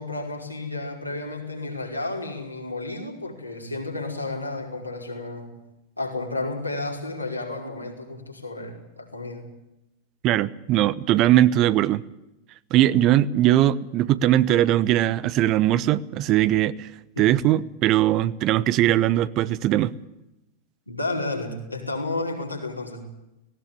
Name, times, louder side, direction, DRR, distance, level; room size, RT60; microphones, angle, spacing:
voice 1, 0.0-5.6 6.0-9.5 17.1-17.3 20.9-23.1, left 2 dB, 85° left, -1 dB, 5.0 m, -32 dB
voice 2, 10.2-12.0 12.7-16.9 17.2-19.9, right 13 dB, 40° right, 18 dB, 0.9 m, -20 dB
18.5 x 18.0 x 10.0 m, 0.92 s
figure-of-eight pair, 90°, 0 cm